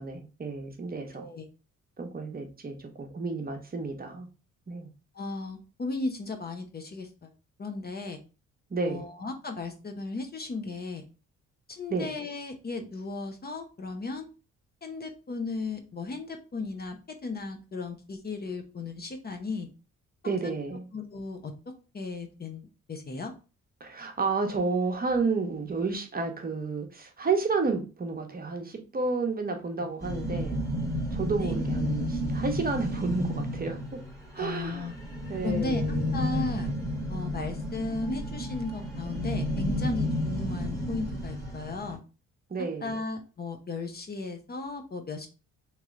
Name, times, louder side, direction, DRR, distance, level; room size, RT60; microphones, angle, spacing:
voice 1, 0.0-1.3 2.0-4.3 4.7-4.9 8.7-9.1 11.9-12.1 20.2-20.8 23.8-30.6 31.1-34.0 34.3-34.9 35.3-36.2 42.5-43.0, right 4 dB, 30° right, 4 dB, 0.9 m, -31 dB
voice 2, 1.1-1.5 5.1-7.3 7.6-8.2 8.8-11.0 11.7-14.3 14.8-19.7 20.2-20.6 20.9-23.3 31.4-31.6 34.4-34.9 35.4-35.8 36.1-36.7 37.1-42.0 42.8-45.3, left 3 dB, 30° left, 5 dB, 0.7 m, -35 dB
sound 1, 30.0-41.9, equal, 10° left, 1.4 m, -32 dB
3.0 x 2.9 x 3.6 m, 0.33 s
cardioid pair, 85°, 30 cm